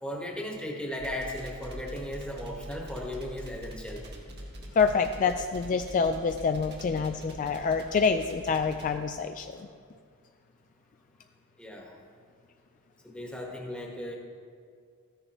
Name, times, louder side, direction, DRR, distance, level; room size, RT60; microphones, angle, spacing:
voice 1, 0.0-4.1 9.6-9.7 11.6-12.0 13.0-14.2, left 1 dB, 5° left, -1 dB, 1.3 m, -36 dB
sound 1, 1.0-9.0, equal, 55° right, 1.6 m, -43 dB
voice 2, 4.8-9.5, left 5 dB, 40° left, 7 dB, 0.3 m, -26 dB
13.5 x 10.0 x 3.0 m, 2.1 s
head